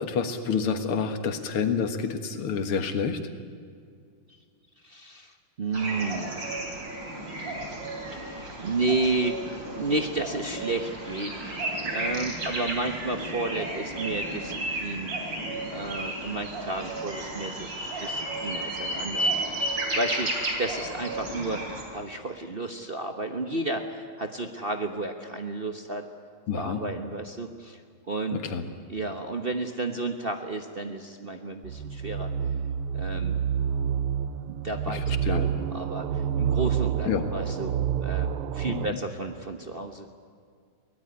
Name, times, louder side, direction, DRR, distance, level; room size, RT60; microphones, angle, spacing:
voice 1, 0.0-3.2 26.5-26.8 28.3-28.6 34.9-35.5 37.1-37.3 38.7-39.0, left 6 dB, 80° left, 8 dB, 2.5 m, -28 dB
voice 2, 4.8-6.6 8.1-9.5 9.8-11.6 11.9-15.1 15.7-21.6 21.9-26.1 26.5-27.8 28.1-28.4 28.9-32.3 32.9-33.4 34.5-40.1, right 2 dB, 35° right, 5 dB, 1.0 m, -32 dB
sound 1, 5.7-21.8, right 1 dB, 55° right, 4.2 m, -33 dB
sound 2, 31.6-38.9, right 8 dB, 85° right, 1.7 m, -28 dB
23.5 x 18.0 x 9.7 m, 2.2 s
omnidirectional pair, 2.4 m